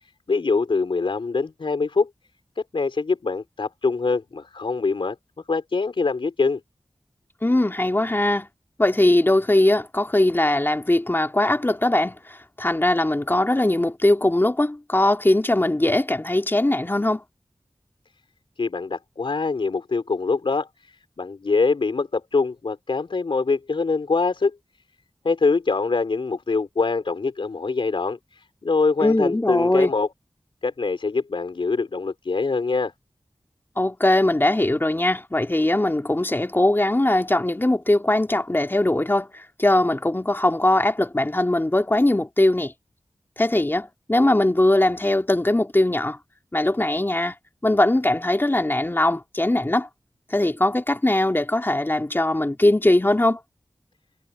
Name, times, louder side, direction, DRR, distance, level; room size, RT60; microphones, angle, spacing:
voice 1, 0.3-2.1 2.7-5.2 5.5-6.6 18.6-24.6 25.2-30.1 30.6-32.9, left 4 dB, 80° left, 4.4 m, -24 dB
voice 2, 7.4-8.5 8.8-17.2 29.0-29.9 33.8-42.7 43.4-46.2 46.5-47.3 47.6-49.9 50.3-53.4, left 1 dB, 25° left, 2.9 m, -20 dB
wide cardioid pair, 60°, 9 cm